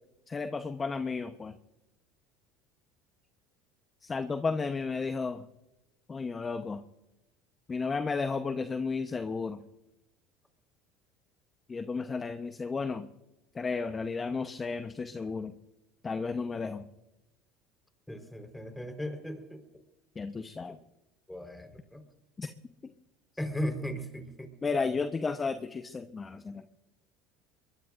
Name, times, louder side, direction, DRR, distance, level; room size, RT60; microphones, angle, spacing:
voice 1, 0.3-1.5 4.0-5.4 6.1-6.8 7.7-9.6 11.7-13.1 13.5-15.5 16.0-16.8 20.2-20.8 22.4-22.5 24.6-26.7, left 4 dB, 25° left, 9 dB, 1.0 m, -33 dB
voice 2, 18.1-19.6 21.3-22.0 23.4-24.5, equal, 5° left, 5 dB, 4.4 m, -37 dB
23.5 x 22.0 x 2.6 m, 0.95 s
hypercardioid pair, 80°, 0 cm